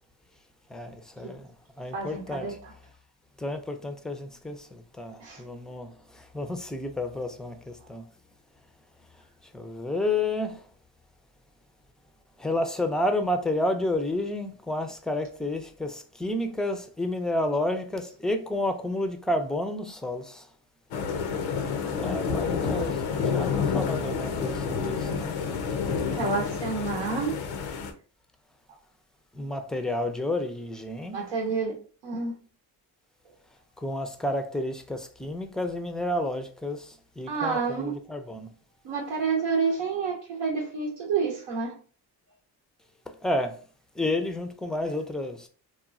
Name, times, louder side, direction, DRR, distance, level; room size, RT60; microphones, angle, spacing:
voice 1, 0.7-2.5 3.4-8.0 9.5-10.6 12.4-20.5 21.9-25.4 29.3-31.2 33.8-38.5 43.1-43.6 44.0-45.5, left 1 dB, ahead, 0.3 m, -31 dB
voice 2, 1.9-2.7 5.2-5.4 26.1-27.3 31.1-31.7 32.0-32.3 37.3-37.9 38.8-41.7, right 5 dB, 80° right, 0.7 m, -29 dB
sound 1, 20.9-27.9, left 6 dB, 85° left, 0.5 m, -29 dB
3.0 x 2.2 x 2.4 m
supercardioid pair, 50°, 46 cm